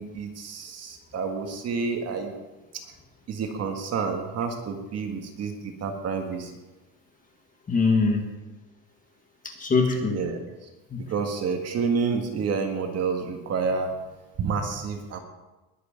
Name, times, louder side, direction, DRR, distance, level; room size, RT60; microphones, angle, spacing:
voice 1, 0.0-2.3 3.3-6.5 10.1-10.4 11.0-13.9 14.4-15.2, right 5 dB, 40° right, 4 dB, 1.7 m, -29 dB
voice 2, 7.7-8.3 9.4-10.3 10.9-11.1, left 4 dB, 20° left, 2 dB, 1.7 m, -23 dB
20.5 x 8.2 x 5.2 m, 1.1 s
cardioid pair, 175°, 40 cm